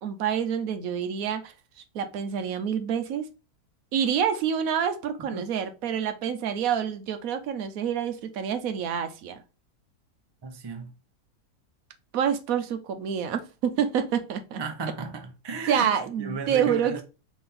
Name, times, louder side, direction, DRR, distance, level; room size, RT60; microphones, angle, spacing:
voice 1, 0.0-1.5 1.9-3.3 3.9-9.4 12.1-14.6 15.7-17.0, right 8 dB, 70° right, 1.1 m, -27 dB
voice 2, 10.4-10.9 14.6-17.0, right 5 dB, 45° right, 0.3 m, -34 dB
4.1 x 3.4 x 3.6 m
omnidirectional pair, 1.6 m